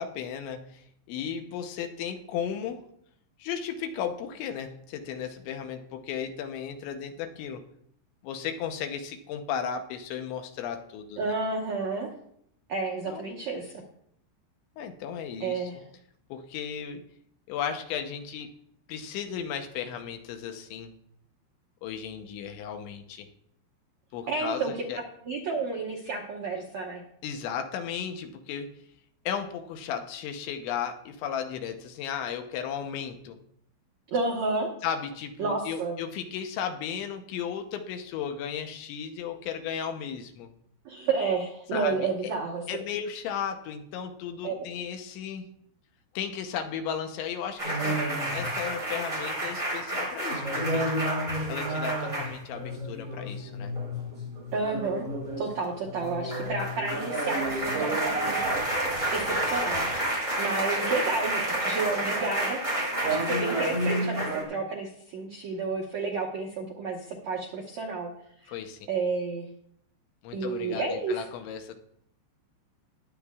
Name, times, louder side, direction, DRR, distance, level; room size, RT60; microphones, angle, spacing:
voice 1, 0.0-2.8 3.4-7.6 8.2-11.2 13.1-13.4 14.8-15.7 16.3-17.0 17.5-18.5 18.9-20.9 21.8-23.3 24.1-25.0 27.2-28.7 29.3-33.4 34.8-40.5 41.7-42.1 42.7-45.5 46.1-48.0 48.3-50.8 51.5-53.7 68.5-68.8 70.2-71.7, left 8 dB, 85° left, 6 dB, 3.2 m, -35 dB
voice 2, 11.2-12.1 12.7-13.8 15.4-15.8 24.3-24.7 25.2-27.0 34.1-34.7 35.4-36.0 40.8-42.6 44.4-44.7 54.5-55.0 55.4-59.9 60.4-68.1 68.4-68.5 68.9-69.5 70.3-71.3, right 4 dB, 90° right, -1 dB, 1.5 m, -31 dB
sound 1, 47.6-64.4, right 1 dB, 10° right, 3.6 m, -29 dB
21.0 x 8.5 x 2.4 m, 0.70 s
omnidirectional pair, 5.2 m